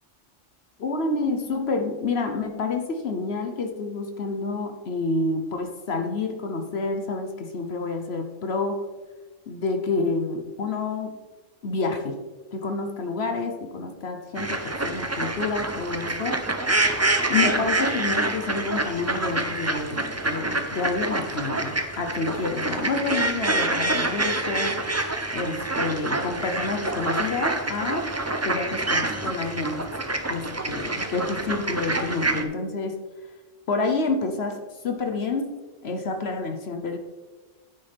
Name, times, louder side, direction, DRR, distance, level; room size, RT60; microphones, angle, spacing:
voice 1, 0.8-8.9 9.5-11.2 11.6-16.7 17.3-24.9 25.3-28.2 28.4-29.9 30.3-33.0 33.7-37.0, left 3 dB, 60° left, 5 dB, 1.1 m, -29 dB
sound 1, 14.4-32.4, right 2 dB, 20° right, 0.5 m, -27 dB
9.7 x 9.6 x 3.4 m, 1.2 s
omnidirectional pair, 1.3 m